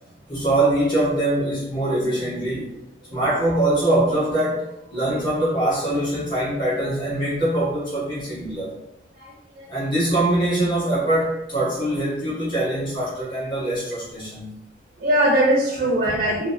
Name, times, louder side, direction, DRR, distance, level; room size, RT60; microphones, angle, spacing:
voice 1, 0.3-2.7 3.1-8.7 9.7-14.6 16.0-16.1, right 1 dB, 25° left, -10 dB, 0.9 m, -23 dB
voice 2, 9.2-9.7 15.0-16.5, right 1 dB, 45° right, -3 dB, 0.4 m, -21 dB
2.9 x 2.0 x 2.6 m, 0.87 s
head